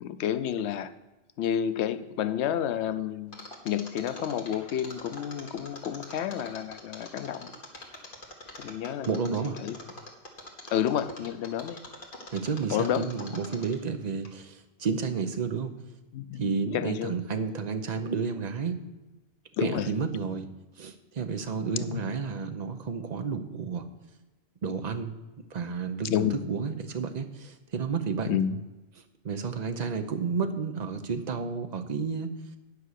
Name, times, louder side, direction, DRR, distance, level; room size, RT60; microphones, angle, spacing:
voice 1, 0.0-0.9 1.4-3.4 3.7-7.5 8.6-9.1 9.6-9.7 10.7-11.8 12.7-13.1 16.1-16.4 16.7-17.1 19.6-19.9 21.9-22.0 26.1-26.4 28.3-28.5, left 10 dB, 85° left, 13 dB, 0.9 m, -29 dB
Mechanisms, 3.3-13.9 14.2-14.3, left 2 dB, 55° left, 1.6 m, -44 dB
voice 2, 9.1-9.6 12.3-15.7 16.4-18.8 19.6-20.5 20.8-23.8 24.6-25.1 25.5-28.4 29.2-32.3, right 5 dB, 45° right, 7 dB, 0.8 m, -31 dB
9.7 x 5.5 x 6.4 m, 1.1 s
omnidirectional pair, 1.1 m